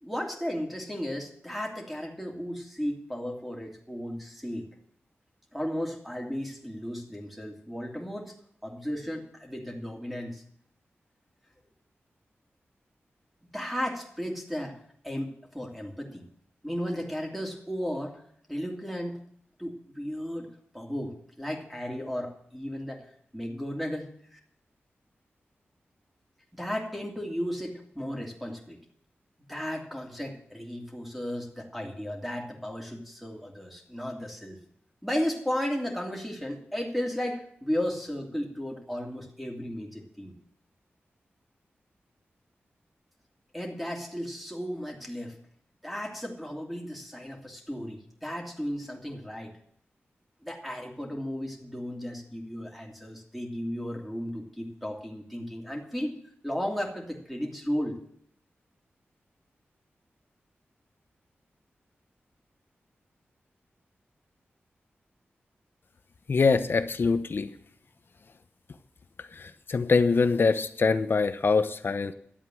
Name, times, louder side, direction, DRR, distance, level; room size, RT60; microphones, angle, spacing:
voice 1, 0.0-4.7 5.5-8.3 8.6-10.4 13.5-14.8 15.0-16.3 16.6-18.1 18.5-19.2 19.6-20.5 20.7-23.0 23.3-24.4 26.5-28.8 29.5-34.6 35.0-40.3 43.5-45.4 45.8-49.5 50.4-56.2 56.4-58.0, equal, ahead, 0 dB, 2.9 m, -34 dB
voice 2, 66.3-67.5 69.3-72.1, left 4 dB, 55° left, 11 dB, 0.9 m, -24 dB
11.5 x 8.1 x 7.7 m, 0.65 s
wide cardioid pair, 90°, 4 cm